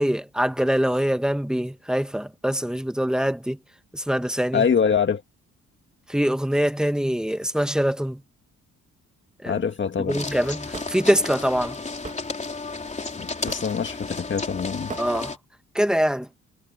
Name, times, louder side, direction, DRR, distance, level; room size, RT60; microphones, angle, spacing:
voice 1, 0.0-3.6 3.9-4.6 6.1-8.2 9.4-9.6 10.0-11.8 15.0-15.3 15.7-16.3, equal, ahead, 1.4 m, -24 dB
voice 2, 4.5-5.2 9.5-10.3 13.2-14.9, left 6 dB, 40° left, 1.8 m, -24 dB
sound 1, 10.1-15.4, left 3 dB, 25° left, 3.6 m, -33 dB
Hammer / Wood, 10.7-10.9 12.0-12.2 13.5-13.8 14.9-15.1, right 4 dB, 25° right, 2.6 m, -36 dB
cardioid pair, 90°, 30 cm